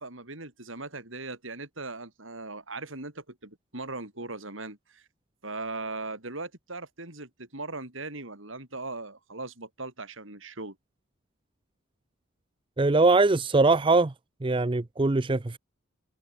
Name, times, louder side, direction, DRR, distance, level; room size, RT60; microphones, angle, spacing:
voice 1, 0.0-5.1 5.4-10.8, right 3 dB, 70° right, 5.5 m, -39 dB
voice 2, 12.8-14.1 14.4-15.6, right 3 dB, 25° right, 0.6 m, -22 dB
head